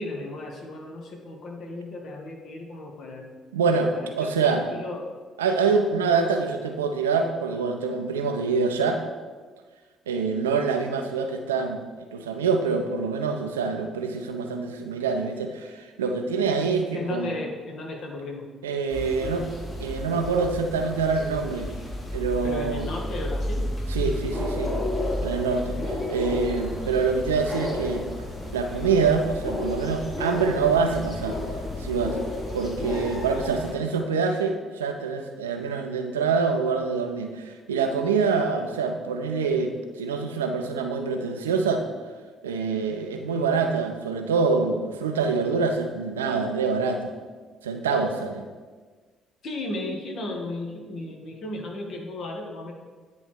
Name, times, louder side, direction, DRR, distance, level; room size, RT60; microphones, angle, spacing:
voice 1, 0.0-3.3 3.9-5.1 16.9-18.5 22.4-23.7 49.4-52.7, left 2 dB, 55° left, 1 dB, 1.1 m, -35 dB
voice 2, 3.5-4.6 5.4-9.0 10.1-11.8 12.1-17.3 18.6-19.5 19.8-21.7 22.1-22.9 23.9-24.7 25.2-25.8 26.1-28.1 28.5-31.4 31.8-32.2 32.5-41.8 42.4-47.1 47.6-48.4, right 5 dB, 80° right, 5 dB, 0.5 m, -25 dB
sound 1, 18.9-33.7, left 1 dB, 35° left, 1.8 m, -31 dB
9.5 x 3.2 x 4.5 m, 1.4 s
figure-of-eight pair, 45°, 0 cm